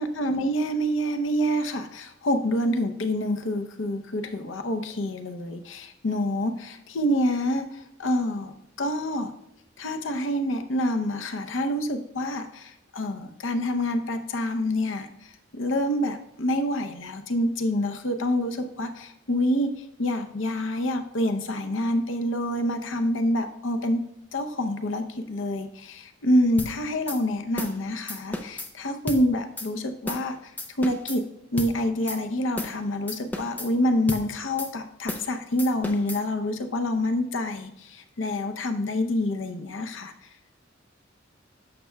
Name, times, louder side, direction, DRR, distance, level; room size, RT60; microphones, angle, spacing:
voice 1, 0.0-9.3 9.8-24.0 24.3-30.5 30.8-31.2 31.5-40.1, left 1 dB, 80° left, 7 dB, 0.7 m, -27 dB
sound 1, 26.6-26.7 27.1-27.2 27.6-27.8 28.1-28.7 29.1-29.2 29.6-29.7 30.1-30.3 30.6-31.2 31.6-31.7 32.1-32.2 32.6-32.8 33.1-33.7 34.1-34.3 34.6-34.7 35.1-35.3 35.6-36.2, left 1 dB, 10° left, 0.5 m, -34 dB
11.0 x 6.6 x 2.3 m, 0.78 s
head